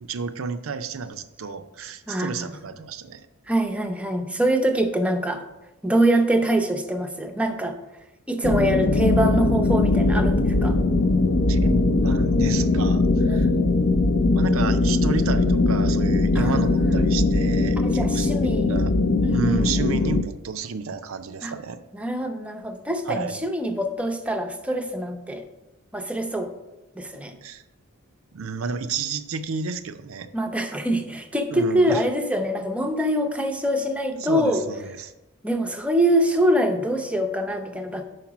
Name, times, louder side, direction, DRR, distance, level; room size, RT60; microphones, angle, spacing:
voice 1, 0.0-3.3 11.5-13.5 14.3-18.9 19.3-21.8 23.1-23.4 27.4-27.6 28.3-30.3 31.5-32.0 34.2-35.1, right 5 dB, 70° right, 10 dB, 0.5 m, -31 dB
voice 2, 2.1-2.5 3.5-5.4 5.8-7.8 8.3-10.8 13.3-13.6 16.3-16.9 17.8-18.8 19.2-19.7 21.4-21.5 21.9-25.4 25.9-26.5 27.0-27.3 30.3-34.6 35.4-38.0, right 1 dB, 5° right, 5 dB, 0.6 m, -24 dB
sound 1, 8.4-20.2, left 2 dB, 50° left, 0.5 m, -20 dB
5.9 x 4.7 x 6.0 m, 0.97 s
head